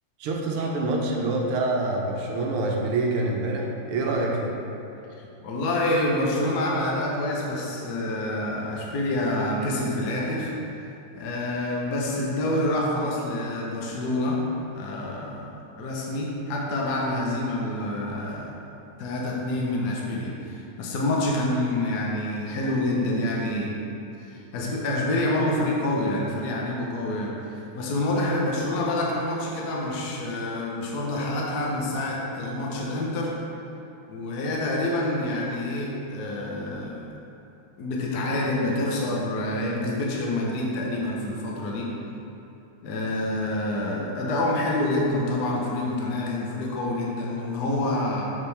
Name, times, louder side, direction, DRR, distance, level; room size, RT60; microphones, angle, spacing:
voice 1, 0.2-4.5, right 2 dB, 85° right, 0 dB, 1.7 m, -26 dB
voice 2, 5.2-18.6 19.0-23.8 24.2-33.4 34.1-37.1 37.8-42.0 42.8-48.2, left 1 dB, 60° left, -3 dB, 1.2 m, -27 dB
6.9 x 5.2 x 3.3 m, 2.8 s
omnidirectional pair, 2.4 m